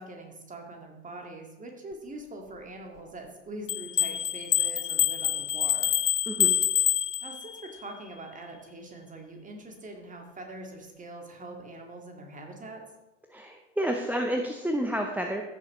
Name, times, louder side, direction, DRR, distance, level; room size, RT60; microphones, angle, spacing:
voice 1, 0.0-5.9 7.2-12.8, right 2 dB, 20° right, 2 dB, 2.0 m, -43 dB
sound 1, 3.7-7.7, left 12 dB, 85° left, 0.5 m, -26 dB
voice 2, 6.3-6.6 13.3-15.4, right 1 dB, 5° right, 3 dB, 0.7 m, -30 dB
14.5 x 6.6 x 3.1 m, 1.0 s
figure-of-eight pair, 75°, 36 cm